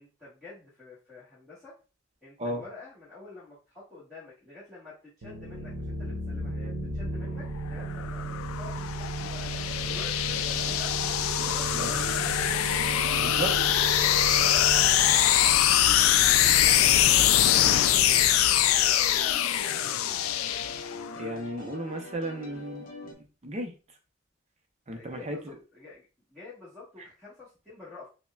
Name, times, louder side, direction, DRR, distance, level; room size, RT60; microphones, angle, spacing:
voice 1, 0.0-1.7 2.2-9.5 9.9-12.6 13.2-13.5 14.4-19.9 24.9-28.1, left 3 dB, ahead, -10 dB, 1.2 m, -47 dB
sound 1, 5.2-16.8, right 2 dB, 70° right, 0.9 m, -35 dB
sound 2, 7.7-21.2, left 11 dB, 85° left, 0.3 m, -23 dB
voice 2, 11.7-12.1 13.2-13.5 21.2-22.8 23.4-23.7 24.9-25.5, right 1 dB, 30° right, 4 dB, 0.6 m, -34 dB
sound 3, 13.3-23.1, left 1 dB, 40° left, 0.7 m, -43 dB
5.5 x 2.2 x 2.3 m, 0.34 s
head